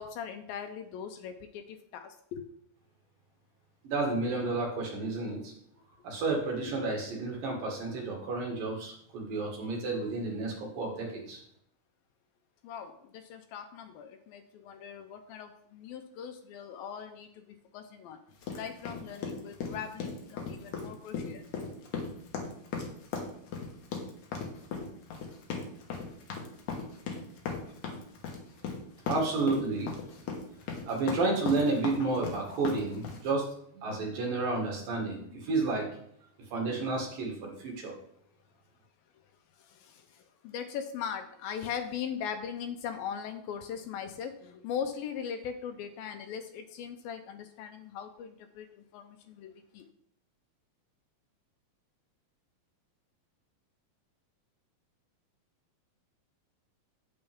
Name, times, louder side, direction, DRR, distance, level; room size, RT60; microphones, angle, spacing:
voice 1, 0.0-2.4 12.6-18.2 18.5-21.5 32.0-32.1 39.6-49.9, left 8 dB, 80° left, 7 dB, 2.3 m, -40 dB
voice 2, 3.8-5.5 6.0-11.4 27.9-28.0 29.1-29.9 30.8-33.5 33.8-35.9 36.5-37.9, right 3 dB, 65° right, 0 dB, 3.4 m, -31 dB
sound 1, 18.4-33.3, left 5 dB, 60° left, 2.4 m, -37 dB
8.8 x 8.1 x 3.5 m, 0.68 s
omnidirectional pair, 4.4 m